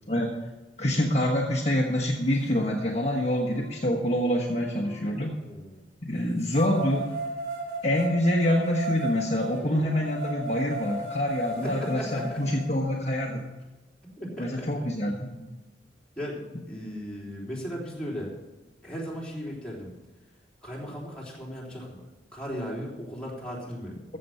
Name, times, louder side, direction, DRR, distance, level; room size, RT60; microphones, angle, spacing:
voice 1, 0.8-5.3 6.0-7.2 7.8-13.4 14.4-15.3, left 1 dB, 35° left, -1 dB, 1.3 m, -26 dB
sound 1, 2.7-2.8 3.4-5.3 6.5-12.6, right 1 dB, 50° right, 3.1 m, -36 dB
voice 2, 5.4-5.9 11.6-12.6 14.2-14.9 15.3-15.5 16.2-18.3 18.8-19.9 20.6-22.0 22.3-24.0, equal, 5° left, -5 dB, 3.5 m, -37 dB
14.5 x 7.7 x 5.7 m, 1.1 s
head